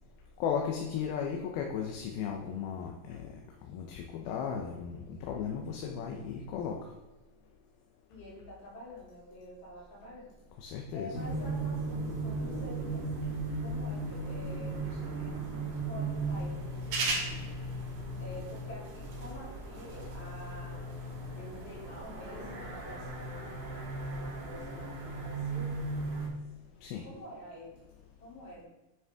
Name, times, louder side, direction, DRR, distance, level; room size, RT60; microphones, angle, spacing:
voice 1, 0.4-3.3 3.7-6.8 10.6-11.2 26.8-27.0, left 7 dB, 80° left, 1 dB, 2.6 m, -35 dB
voice 2, 8.1-10.4 10.9-13.4 13.6-17.4 18.2-20.8 21.4-23.8 24.1-25.7 27.0-27.8 28.2-28.6, equal, 55° left, -8 dB, 4.8 m, -48 dB
sound 1, 11.1-26.3, right 2 dB, 75° right, 4.1 m, -36 dB
9.3 x 6.3 x 3.5 m, 1.0 s
omnidirectional pair, 4.5 m